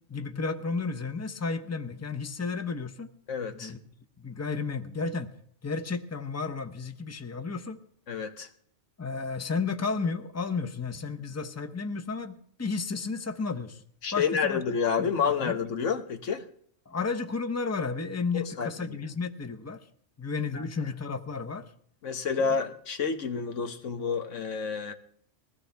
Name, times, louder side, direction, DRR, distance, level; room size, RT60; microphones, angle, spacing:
voice 1, 0.1-3.1 3.5-3.8 4.2-5.3 5.6-7.8 9.0-13.8 14.1-14.6 15.0-15.6 16.9-19.8 20.2-21.7 22.4-22.5, left 4 dB, 15° left, 0.7 m, -32 dB
voice 2, 3.3-3.7 8.1-8.5 14.0-16.5 18.3-19.0 20.5-20.6 22.0-24.9, left 6 dB, 75° left, 1.4 m, -29 dB
21.5 x 16.0 x 3.4 m
omnidirectional pair, 1.3 m